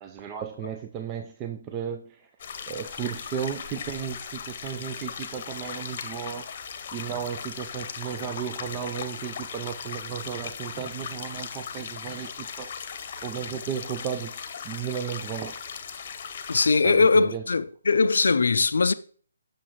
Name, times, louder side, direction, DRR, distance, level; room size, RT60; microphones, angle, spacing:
voice 1, 0.0-2.2 2.7-6.5 6.9-14.3 14.6-15.6 16.8-17.4, right 8 dB, 20° right, 0.4 m, -34 dB
sound 1, 2.4-16.7, left 7 dB, 40° left, 0.9 m, -38 dB
voice 2, 16.5-18.9, left 4 dB, 70° left, 0.4 m, -21 dB
8.5 x 6.4 x 3.0 m
figure-of-eight pair, 145°, 0 cm